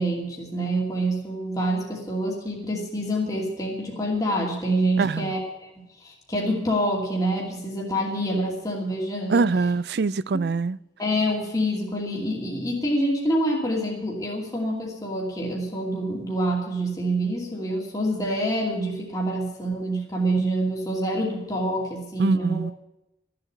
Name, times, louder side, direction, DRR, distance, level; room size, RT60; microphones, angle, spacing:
voice 1, 0.0-9.4 11.0-22.7, right 1 dB, 20° left, 2.5 m, -26 dB
voice 2, 5.0-5.3 9.3-10.8 22.2-22.7, right 4 dB, 60° right, 0.4 m, -23 dB
14.0 x 7.8 x 8.5 m
head